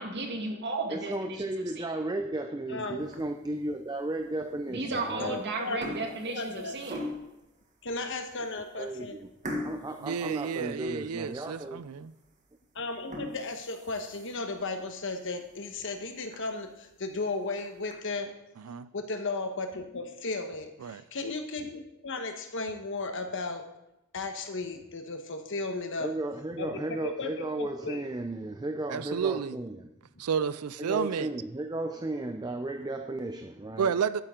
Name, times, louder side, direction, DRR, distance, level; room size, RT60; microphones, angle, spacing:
voice 1, 0.0-1.4 1.8-1.9 4.7-7.0, right 3 dB, 50° right, 3 dB, 1.7 m, -34 dB
voice 2, 0.9-5.4 8.8-9.3 9.6-11.8 26.0-29.9 30.8-33.9, right 2 dB, 20° right, 6 dB, 0.5 m, -34 dB
voice 3, 2.7-3.1 4.8-4.9 5.2-5.9 6.3-6.8 7.8-9.2 12.7-18.3 18.9-23.7 24.1-26.1 26.6-28.0, left 3 dB, 60° left, 5 dB, 1.2 m, -35 dB
sound 1, 3.0-3.5 4.1-4.2 5.1-5.3 5.6-7.5 8.1-8.2 8.5-8.6 9.4-11.2 11.6-11.7 12.2-12.3 12.9-14.5 15.0-15.1 15.5-15.6 15.9-16.0 16.3-16.4 17.3-17.9, left 1 dB, 35° right, 1.4 m, -40 dB
voice 4, 10.0-12.1 18.6-18.9 20.8-21.0 28.9-29.6 30.2-31.3 33.8-34.2, right 7 dB, 85° right, 16 dB, 0.4 m, -31 dB
12.0 x 9.2 x 3.8 m, 0.89 s
head